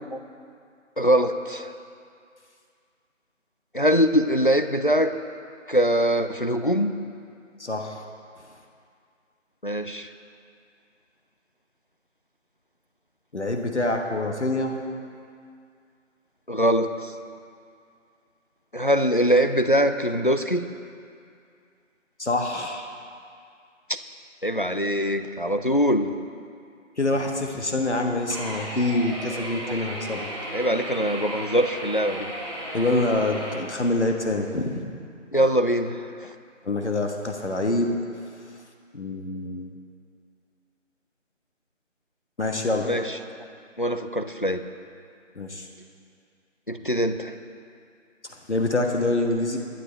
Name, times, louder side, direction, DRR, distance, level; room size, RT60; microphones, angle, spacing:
voice 1, 1.0-1.7 3.7-5.1 5.7-6.9 9.6-10.1 16.5-17.1 18.7-20.7 24.4-26.1 30.5-32.3 35.3-36.3 42.8-43.2 43.8-44.6 46.7-47.4, equal, 40° left, 8 dB, 0.5 m, -23 dB
voice 2, 7.6-8.0 13.3-14.8 22.2-22.9 27.0-30.3 32.7-34.9 36.6-38.0 38.9-39.8 42.4-42.9 45.4-45.7 48.3-49.6, left 2 dB, 60° left, 3 dB, 1.4 m, -26 dB
sound 1, 28.3-33.5, right 1 dB, 20° right, 1.7 m, -35 dB
21.0 x 10.0 x 3.4 m, 2.3 s
figure-of-eight pair, 165°, 39 cm